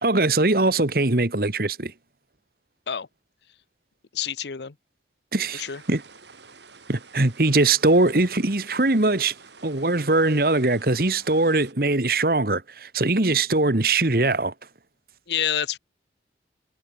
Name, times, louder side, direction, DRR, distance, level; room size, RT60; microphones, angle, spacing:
voice 1, 0.0-1.9 5.3-6.0 6.9-9.3 9.6-14.5, right 2 dB, 55° right, 1.5 m, -21 dB
voice 2, 4.1-4.7 5.5-5.8 15.3-15.8, left 9 dB, 70° left, 0.8 m, -27 dB
sound 1, 5.5-11.7, right 4 dB, 75° right, 7.4 m, -49 dB
head